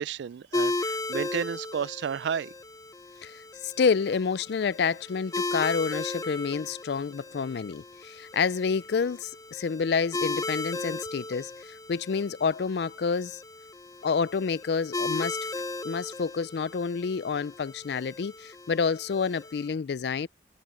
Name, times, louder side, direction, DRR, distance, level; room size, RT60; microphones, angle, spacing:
voice 1, 0.0-2.5, right 7 dB, 75° right, 0.3 m, -32 dB
sound 1, 0.5-19.7, left 2 dB, 20° left, 0.8 m, -36 dB
voice 2, 3.6-13.4 14.0-15.4 15.8-20.3, left 5 dB, 65° left, 0.4 m, -28 dB
head